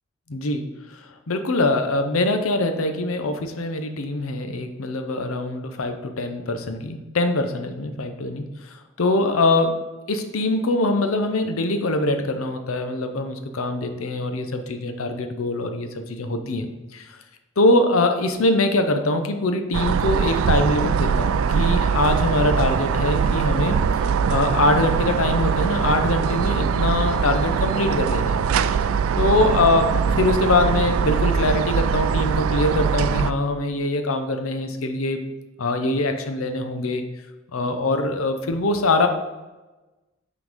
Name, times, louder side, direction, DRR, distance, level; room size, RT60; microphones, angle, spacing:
voice 1, 0.3-0.6 1.3-8.4 9.0-9.8 10.1-16.7 16.9-17.0 17.6-23.8 24.3-28.4 29.2-35.2 35.6-37.0 37.5-39.1, left 2 dB, 75° left, 7 dB, 0.7 m, -23 dB
sound 1, 19.7-33.3, right 6 dB, 75° right, 0.3 m, -22 dB
6.0 x 3.9 x 5.1 m, 1.1 s
head